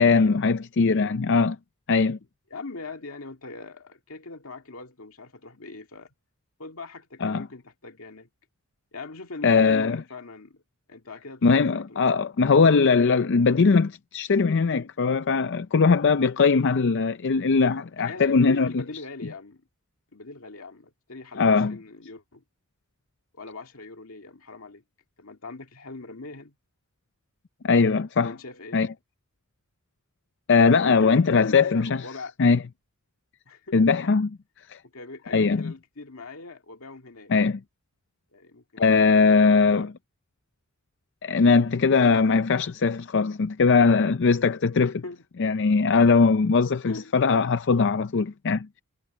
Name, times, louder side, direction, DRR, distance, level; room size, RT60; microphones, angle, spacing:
voice 1, 0.0-1.6 1.9-2.2 7.2-7.5 9.4-10.0 11.4-18.8 21.4-21.8 27.6-28.3 28.7-28.9 30.5-32.1 32.4-32.6 33.7-34.4 34.7-34.8 35.3-35.7 37.3-37.6 38.8-39.9 41.2-44.9 45.4-48.8, left 4 dB, 55° left, 0.5 m, -20 dB
voice 2, 2.5-6.1 6.6-8.3 8.9-10.6 10.9-12.0 18.0-19.7 20.1-22.4 23.3-24.8 25.2-26.6 28.2-28.8 30.8-32.3 33.5-33.8 34.9-37.3 38.3-38.9 39.5-39.9 44.8-45.2 46.8-47.1, left 3 dB, 75° left, 2.2 m, -41 dB
head